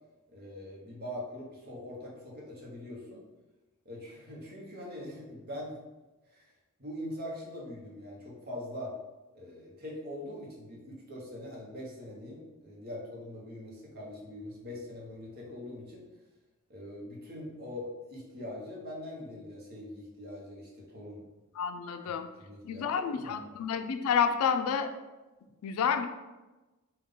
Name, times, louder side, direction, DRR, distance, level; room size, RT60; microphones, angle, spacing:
voice 1, 0.3-3.2 3.8-5.8 6.3-6.5 6.8-8.9 9.3-16.0 16.7-21.3 22.4-23.6, left 1 dB, 45° right, -3 dB, 0.9 m, -42 dB
voice 2, 21.6-22.3 22.6-24.9 25.6-26.1, left 7 dB, 85° left, 8 dB, 0.3 m, -29 dB
3.6 x 2.3 x 3.7 m, 1.1 s
head